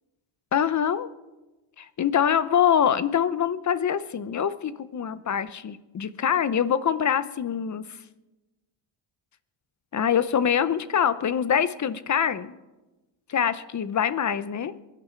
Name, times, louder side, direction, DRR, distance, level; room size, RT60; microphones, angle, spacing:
voice 1, 0.5-1.1 1.8-7.8 9.9-12.5 13.3-14.7, left 8 dB, 35° left, 15 dB, 0.7 m, -24 dB
23.0 x 11.0 x 4.6 m, 1.1 s
cardioid pair, 135°, 48 cm